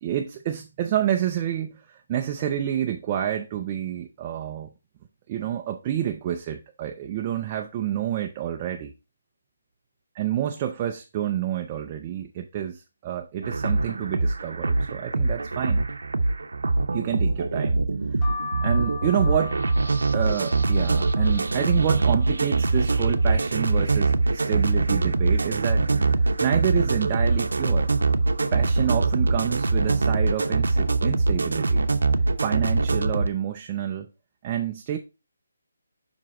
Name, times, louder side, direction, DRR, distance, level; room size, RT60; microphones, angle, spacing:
voice 1, 0.0-4.7 5.3-8.9 10.1-15.9 16.9-17.9 18.6-19.6 20.1-25.9 26.4-27.9 28.5-31.8 32.4-34.1 34.4-35.0, right 10 dB, 15° right, 0.4 m, -28 dB
sound 1, 13.4-33.3, right 3 dB, 80° right, 0.9 m, -23 dB
sound 2, 18.2-23.9 24.3-25.1 25.5-25.6 25.8-26.9 27.4-27.8 28.5-28.8 29.6-29.9 30.1-30.3, left 4 dB, 15° left, 1.1 m, -40 dB
7.5 x 5.2 x 2.9 m
hypercardioid pair, 180°, 0 cm